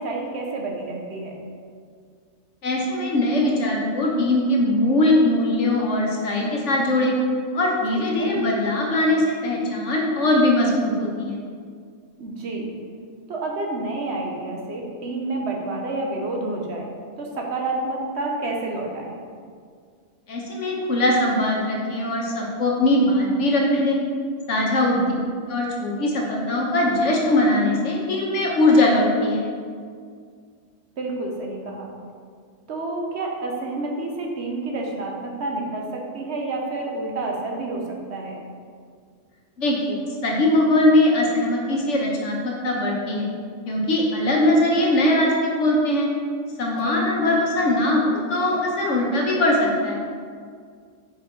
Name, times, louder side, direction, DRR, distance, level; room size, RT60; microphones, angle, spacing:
voice 1, 0.0-1.4 7.9-8.3 12.2-12.7 13.3-16.9 17.2-19.2 24.8-25.2 31.0-31.9 32.7-38.4 46.8-47.0, right 2 dB, 60° right, 0 dB, 1.0 m, -29 dB
voice 2, 2.6-7.2 7.5-11.4 20.3-24.0 24.5-25.0 25.5-29.4 39.6-43.3 43.7-46.1 46.6-50.0, left 1 dB, 65° left, -2 dB, 1.3 m, -21 dB
5.3 x 5.1 x 4.5 m, 2.1 s
omnidirectional pair, 1.4 m